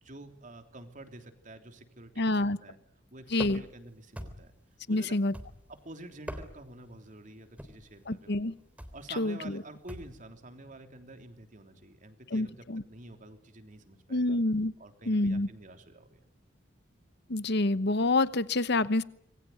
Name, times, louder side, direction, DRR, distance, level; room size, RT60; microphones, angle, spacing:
voice 1, 0.0-2.3 2.6-2.8 3.1-4.5 4.9-5.2 5.8-8.6 8.9-12.6 12.9-14.4 14.8-16.2, right 1 dB, 40° right, 6 dB, 3.4 m, -48 dB
voice 2, 2.2-2.6 3.3-3.6 4.9-5.3 8.1-8.5 9.2-9.6 12.3-12.8 14.1-14.7 15.1-15.5 17.3-19.0, left 2 dB, 60° left, 15 dB, 1.1 m, -27 dB
sound 1, 3.4-3.8 4.2-4.6 5.3-5.8 6.1-6.8 7.6-7.9 8.8-9.1 9.9-10.2, equal, 5° right, 3.5 m, -42 dB
26.5 x 22.0 x 9.4 m, 0.70 s
head